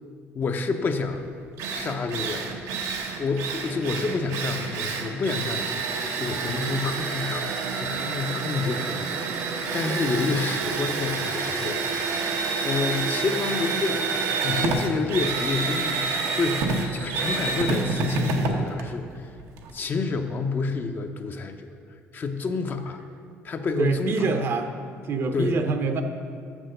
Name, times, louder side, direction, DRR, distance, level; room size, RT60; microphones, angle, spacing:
voice 1, 0.3-1.2 1.7-2.5 3.2-7.5 7.8-9.1 9.5-19.3 19.7-21.7 22.1-23.0 23.4-24.3 25.3-25.5, left 4 dB, 40° left, 6 dB, 0.6 m, -29 dB
Drill, 1.1-1.2 1.6-19.7, right 4 dB, 90° right, 0.9 m, -28 dB
voice 2, 23.8-24.7 25.0-26.0, right 4 dB, 50° right, 7 dB, 0.7 m, -25 dB
6.8 x 6.1 x 6.5 m, 2.2 s
cardioid pair, 125°, 5 cm